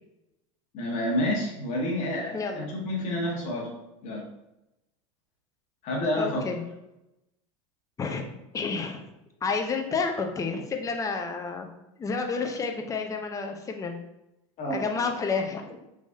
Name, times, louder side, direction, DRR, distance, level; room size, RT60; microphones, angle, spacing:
voice 1, 0.7-3.7 4.0-4.3 5.8-6.5 14.6-14.9, left 1 dB, 45° left, -1 dB, 1.3 m, -29 dB
voice 2, 2.3-2.7 6.2-6.6 8.0-8.2 8.5-9.0 9.4-11.7 12.0-14.0 14.7-15.8, left 4 dB, 20° left, 4 dB, 0.6 m, -30 dB
3.6 x 3.0 x 2.6 m, 0.89 s
hypercardioid pair, 105°, 17 cm